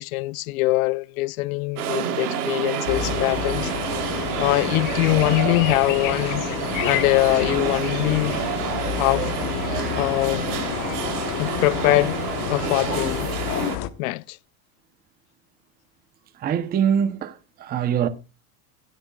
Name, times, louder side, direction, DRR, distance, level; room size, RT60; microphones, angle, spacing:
voice 1, 0.0-3.7 4.4-6.4 6.8-8.5 9.0-9.3 10.0-10.5 11.4-12.2 12.5-13.3 14.0-14.4, left 21 dB, 65° left, 0.6 m, -23 dB
sound 1, 1.8-13.8, right 7 dB, 80° right, 3.3 m, -28 dB
sound 2, 2.9-13.9, left 13 dB, 40° left, 1.1 m, -29 dB
voice 2, 16.4-18.1, right 8 dB, 20° right, 0.7 m, -23 dB
16.5 x 11.5 x 2.3 m
supercardioid pair, 150°, 45 cm